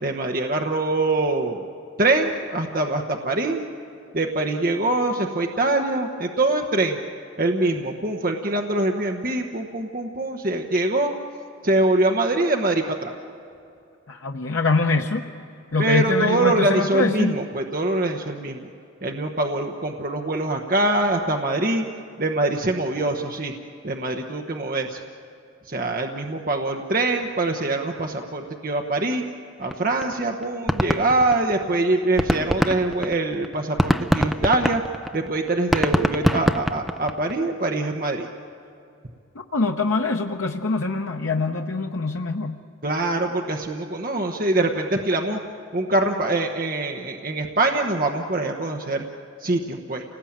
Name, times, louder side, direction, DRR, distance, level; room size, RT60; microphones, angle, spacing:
voice 1, 0.0-1.6 2.0-3.6 4.1-7.0 7.4-11.1 11.6-13.2 15.8-18.7 19.0-21.8 22.2-23.5 23.8-25.0 25.7-29.2 29.6-34.8 35.1-38.3 42.8-45.4 45.7-49.0 49.4-50.0, right 2 dB, 45° right, 2 dB, 1.1 m, -24 dB
voice 2, 14.1-15.3 15.7-17.3 39.5-42.6, left 3 dB, 90° left, 2 dB, 0.9 m, -24 dB
sound 1, 29.7-29.8 30.0-30.1 30.4-31.7 32.0-37.3, equal, ahead, 0.5 m, -23 dB
28.5 x 19.0 x 8.8 m, 2.6 s
head